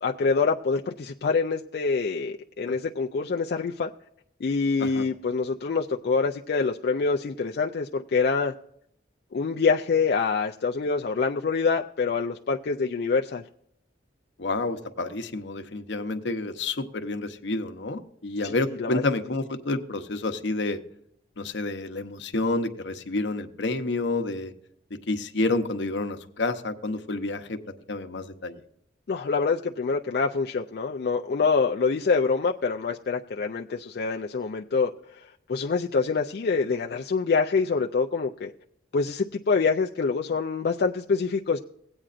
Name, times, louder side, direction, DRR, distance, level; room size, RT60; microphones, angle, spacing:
voice 1, 0.0-3.9 4.4-8.5 9.3-13.4 18.4-19.0 29.1-34.9 35.5-38.5 38.9-41.6, left 4 dB, 55° left, 2 dB, 0.3 m, -25 dB
voice 2, 14.4-20.8 21.4-24.5 24.9-28.6, left 2 dB, 75° left, 7 dB, 0.8 m, -29 dB
17.0 x 8.8 x 2.5 m, 0.72 s
head